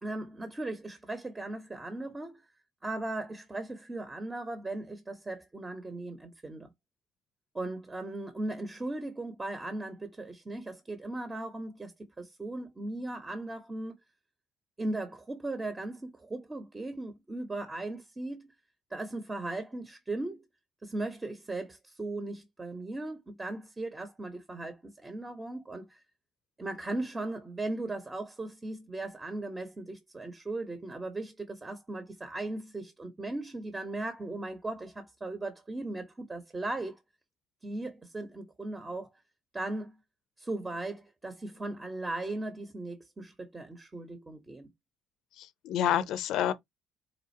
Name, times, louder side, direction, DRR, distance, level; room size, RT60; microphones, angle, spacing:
voice 1, 0.0-2.4 2.8-6.7 7.5-13.9 14.8-18.5 18.9-20.4 20.8-26.0 26.6-37.0 37.6-39.1 39.5-39.9 40.4-44.7, right 2 dB, 20° right, 0.9 m, -37 dB
voice 2, 45.3-46.5, left 10 dB, 75° left, 0.5 m, -29 dB
4.2 x 2.5 x 2.6 m
supercardioid pair, 75°, 0 cm